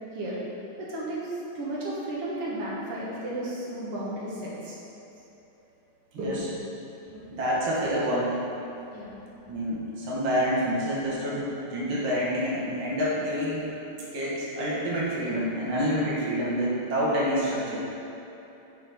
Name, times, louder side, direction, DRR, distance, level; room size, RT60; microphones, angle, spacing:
voice 1, 0.8-4.8 6.2-6.4 7.1-7.3 8.9-9.1, right 1 dB, 85° right, -7 dB, 2.2 m, -33 dB
voice 2, 7.3-8.4 9.5-11.5 11.7-13.7 14.1-17.8, equal, 70° right, -7 dB, 2.2 m, -27 dB
10.0 x 4.2 x 5.2 m, 3.0 s
omnidirectional pair, 2.4 m